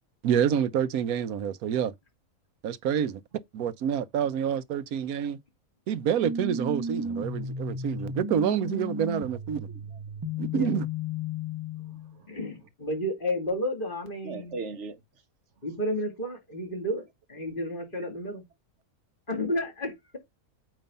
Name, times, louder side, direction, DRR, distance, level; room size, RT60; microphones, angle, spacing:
voice 1, 0.2-1.9 2.6-3.2 3.5-5.4 5.9-9.7 10.4-10.8, right 8 dB, 85° right, 1.2 m, -27 dB
sound 1, 6.2-12.2, left 2 dB, 15° right, 1.1 m, -34 dB
voice 2, 9.7-10.0 10.3-10.4 11.8-12.3 14.2-15.0, right 4 dB, 55° right, 1.2 m, -40 dB
voice 3, 12.3-14.6 15.6-18.4 19.3-20.2, left 1 dB, 35° left, 2.6 m, -32 dB
8.9 x 3.2 x 5.4 m
omnidirectional pair, 1.5 m